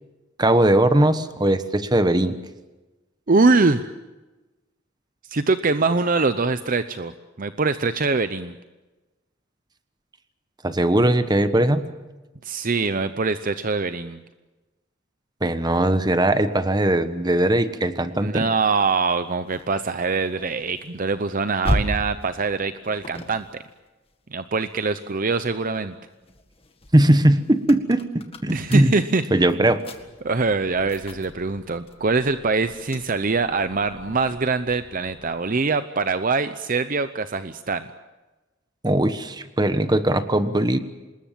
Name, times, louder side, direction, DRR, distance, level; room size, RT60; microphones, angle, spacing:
voice 1, 0.4-2.3 10.6-11.9 15.4-18.4 26.9-28.0 28.4-29.0 29.3-29.8 38.8-40.8, right 1 dB, 20° right, 11 dB, 1.2 m, -19 dB
voice 2, 3.3-3.9 5.3-7.1 7.4-8.5 12.4-14.2 18.2-23.5 24.3-26.0 28.5-29.2 29.6-29.7 30.2-37.9, right 4 dB, 45° right, 11 dB, 0.7 m, -23 dB
sound 1, 18.8-25.3 25.7-35.5, equal, 30° left, 1.9 m, -36 dB
26.0 x 21.0 x 7.5 m, 1.1 s
head